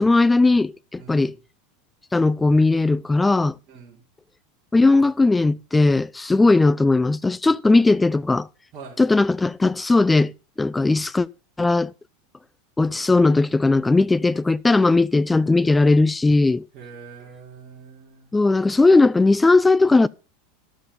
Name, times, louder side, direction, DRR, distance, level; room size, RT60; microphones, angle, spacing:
voice 1, 0.0-1.3 2.1-3.6 4.7-8.5 9.0-10.3 10.6-11.3 11.6-11.9 12.8-16.6 18.3-20.1, left 3 dB, 10° left, 0.5 m, -18 dB
voice 2, 1.0-1.4 3.7-4.0 8.7-9.0 16.7-18.3, right 5 dB, 45° right, 4.0 m, -43 dB
12.5 x 6.8 x 5.5 m
hypercardioid pair, 85°, 0 cm